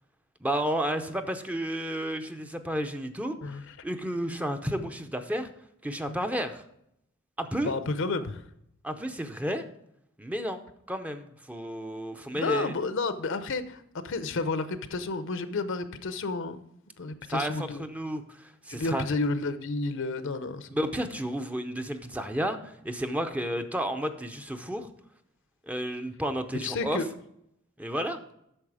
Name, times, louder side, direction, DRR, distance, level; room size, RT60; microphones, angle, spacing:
voice 1, 0.4-5.5 5.8-6.6 7.4-7.7 8.8-9.6 10.2-10.6 10.9-12.7 17.3-19.0 20.7-24.9 25.7-27.0 27.8-28.2, equal, 5° right, 0.6 m, -32 dB
voice 2, 3.4-3.7 6.1-6.2 7.6-8.4 12.3-16.6 17.0-17.8 18.7-20.7 26.5-27.1, left 3 dB, 65° left, 0.7 m, -31 dB
8.9 x 6.4 x 4.8 m
head